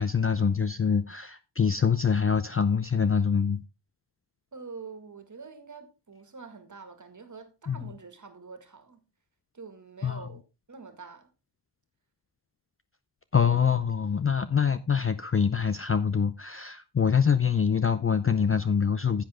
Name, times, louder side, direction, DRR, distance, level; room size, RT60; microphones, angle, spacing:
voice 1, 0.0-3.6 7.7-7.9 10.0-10.3 13.3-19.2, left 6 dB, 30° left, 0.5 m, -25 dB
voice 2, 4.5-9.0 9.5-10.4 10.7-11.3, right 4 dB, 35° right, 2.0 m, -45 dB
10.0 x 8.0 x 3.6 m
wide cardioid pair, 95°, 49 cm